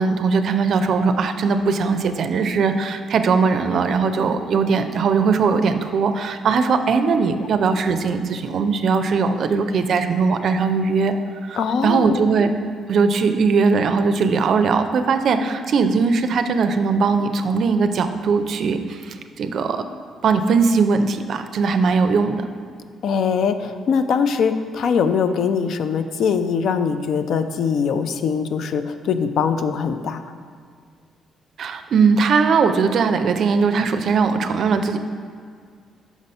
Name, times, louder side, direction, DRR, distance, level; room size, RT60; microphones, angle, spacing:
voice 1, 0.0-11.1 11.4-12.5 12.9-19.8 20.2-22.5 31.6-35.0, right 5 dB, 60° right, 9 dB, 0.4 m, -19 dB
voice 2, 11.6-12.2 23.0-30.2, left 6 dB, 70° left, 9 dB, 0.4 m, -22 dB
5.9 x 4.1 x 5.4 m, 2.1 s
cardioid pair, 90°, 0 cm